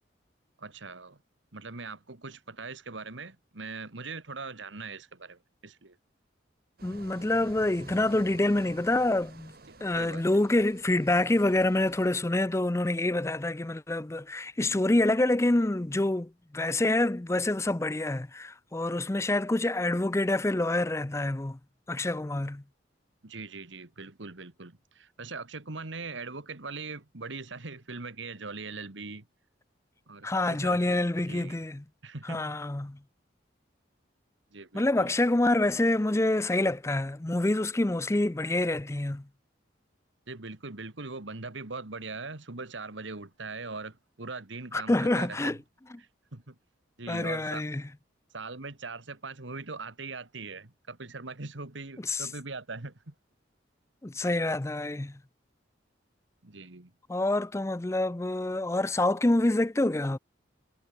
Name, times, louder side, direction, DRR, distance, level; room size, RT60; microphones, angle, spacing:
voice 1, 0.6-1.2 1.5-6.0 9.9-10.2 23.2-29.3 30.1-31.6 32.0-32.5 34.5-35.2 40.3-45.6 46.0-46.6 47.0-47.7 48.3-53.1 56.4-56.9, right 3 dB, 80° right, 1.8 m, -41 dB
voice 2, 6.8-9.5 9.8-21.6 21.9-22.6 30.2-31.8 32.3-33.0 34.7-39.2 44.7-45.6 47.1-47.8 52.1-52.3 54.0-55.1 57.1-60.2, left 2 dB, 15° left, 0.5 m, -27 dB
sound 1, 6.8-12.1, right 2 dB, 50° right, 2.3 m, -50 dB
head